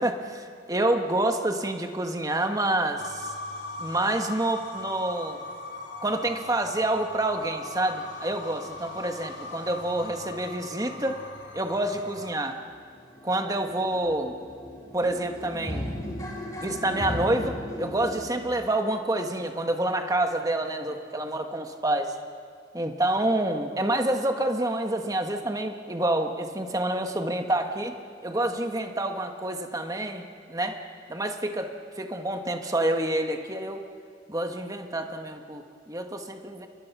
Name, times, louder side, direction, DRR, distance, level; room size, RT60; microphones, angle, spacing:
voice 1, 0.0-3.3 3.8-5.4 6.0-11.2 11.5-12.6 13.2-14.4 14.9-15.8 16.6-22.1 22.7-27.9 28.2-30.8 31.1-33.8 34.3-36.7, right 1 dB, 20° right, 5 dB, 1.6 m, -28 dB
sound 1, 3.0-12.4, left 2 dB, 85° left, 3.2 m, -40 dB
sound 2, 11.9-12.0 12.2-18.3, equal, 20° left, 3.7 m, -37 dB
29.5 x 23.0 x 6.1 m, 2.1 s
head